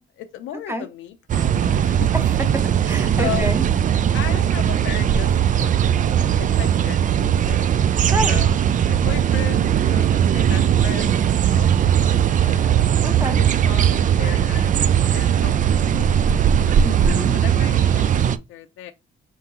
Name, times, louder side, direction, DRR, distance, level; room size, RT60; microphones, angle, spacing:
voice 1, 0.2-2.1 3.2-3.5 4.1-5.7 6.1-8.5 8.8-12.7 13.4-16.3 16.5-16.9 17.3-18.9, left 11 dB, 85° left, 0.6 m, -36 dB
sound 1, 1.3-18.4, right 9 dB, 40° right, 0.4 m, -19 dB
voice 2, 2.9-3.6 8.1-8.4 13.0-13.4 16.8-17.3, equal, 10° right, 1.0 m, -27 dB
4.4 x 3.8 x 2.9 m
cardioid pair, 90°, 20 cm